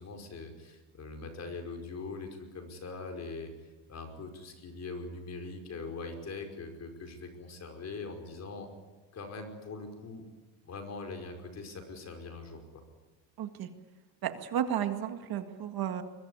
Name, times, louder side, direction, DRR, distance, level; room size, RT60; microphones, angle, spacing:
voice 1, 0.0-3.5 3.9-8.7 9.1-10.2 10.7-12.6, left 3 dB, 35° left, 5 dB, 5.4 m, -42 dB
voice 2, 13.4-13.7 14.2-16.0, right 9 dB, 50° right, 7 dB, 2.0 m, -33 dB
23.0 x 22.5 x 9.8 m, 1.2 s
cardioid pair, 145°, 48 cm